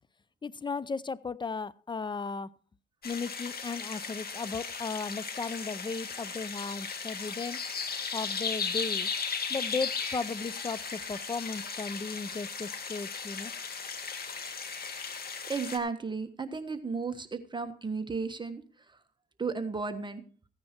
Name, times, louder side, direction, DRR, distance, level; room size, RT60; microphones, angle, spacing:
voice 1, 0.4-2.5 3.0-7.6 8.1-9.1 9.5-13.5, left 4 dB, 25° left, 0.6 m, -36 dB
sound 1, 3.0-15.8, left 5 dB, 50° left, 2.3 m, -36 dB
voice 2, 15.5-19.0 19.4-20.2, right 4 dB, 25° right, 1.3 m, -34 dB
15.0 x 9.6 x 4.4 m
cardioid pair, 90°, 20 cm